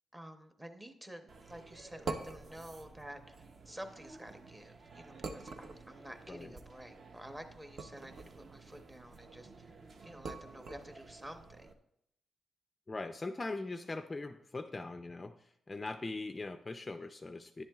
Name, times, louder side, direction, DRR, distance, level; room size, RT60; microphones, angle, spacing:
voice 1, 0.1-3.4 3.7-8.2 8.5-9.7 10.0-11.7, right 1 dB, 10° right, 6 dB, 0.7 m, -50 dB
sound 1, 1.3-11.7, right 4 dB, 45° right, 0.7 m, -48 dB
voice 2, 12.9-15.3 15.7-17.6, left 3 dB, 20° left, 7 dB, 0.3 m, -41 dB
10.5 x 10.5 x 2.3 m, 0.75 s
wide cardioid pair, 165°, 0 cm